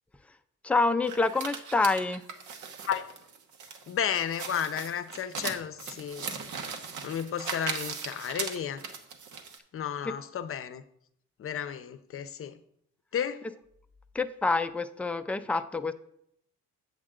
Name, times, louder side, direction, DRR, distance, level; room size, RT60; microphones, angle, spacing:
voice 1, 0.6-2.2 14.1-15.9, left 3 dB, 5° left, 0.4 m, -27 dB
sound 1, 1.0-9.6, right 6 dB, 80° right, 1.1 m, -38 dB
voice 2, 3.9-6.3 6.7-6.8 7.0-8.8 9.7-10.8 11.4-12.6 13.1-13.4 15.5-15.6, left 8 dB, 45° left, 0.6 m, -33 dB
7.6 x 7.3 x 3.7 m
cardioid pair, 90°, 30 cm